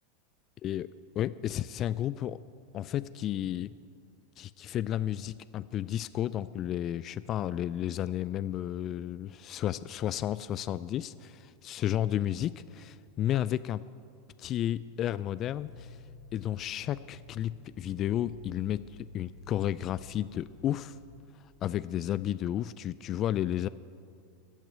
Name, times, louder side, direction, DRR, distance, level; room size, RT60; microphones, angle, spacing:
voice 1, 1.2-2.4 2.7-3.7 4.4-13.9 14.4-16.0 16.3-21.0 21.6-23.7, left 11 dB, 40° left, 17 dB, 0.3 m, -32 dB
sound 1, 15.5-21.3, left 3 dB, 85° left, 1.4 m, -52 dB
15.0 x 8.9 x 8.8 m, 2.3 s
hypercardioid pair, 95°, 0 cm